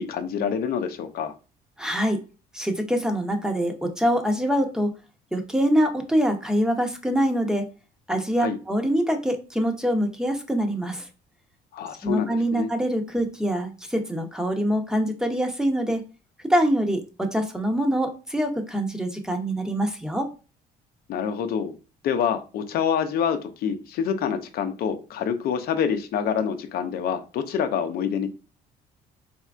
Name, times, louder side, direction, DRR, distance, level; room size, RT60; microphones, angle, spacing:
voice 1, 0.0-1.3 8.4-8.6 11.7-12.7 21.1-21.7 22.0-28.3, left 7 dB, 65° left, 8 dB, 0.6 m, -26 dB
voice 2, 1.8-2.2 2.5-4.9 5.3-7.6 8.1-11.1 12.0-16.0 16.5-20.3, equal, 5° right, 4 dB, 0.8 m, -24 dB
4.3 x 3.5 x 2.4 m, 0.33 s
cardioid pair, 110°, 17 cm